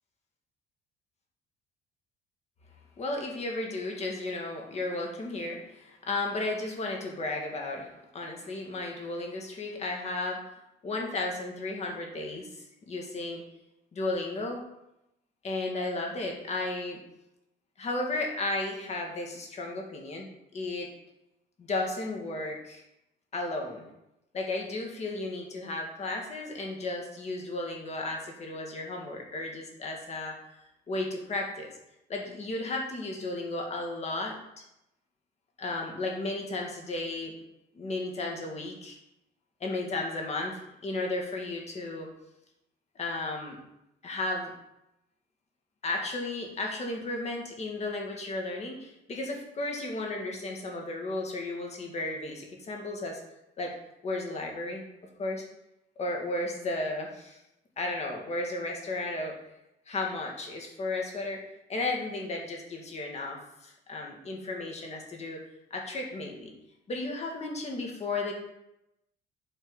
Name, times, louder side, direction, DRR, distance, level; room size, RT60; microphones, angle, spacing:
voice 1, 3.0-10.6 10.8-13.4 13.9-14.7 15.4-17.0 17.8-20.9 21.6-22.8 23.3-23.9 24.3-30.4 30.9-31.7 32.1-34.6 35.6-37.3 37.7-39.0 39.6-42.1 43.0-43.6 44.0-44.5 45.8-53.2 53.6-53.8 54.0-54.8 55.2-55.4 56.0-57.4 57.8-59.4 59.9-61.4 61.7-65.4 65.7-66.5 66.9-68.3, left 2 dB, 40° left, 0 dB, 2.0 m, -34 dB
7.9 x 4.3 x 5.5 m, 0.87 s
cardioid pair, 110°, 17 cm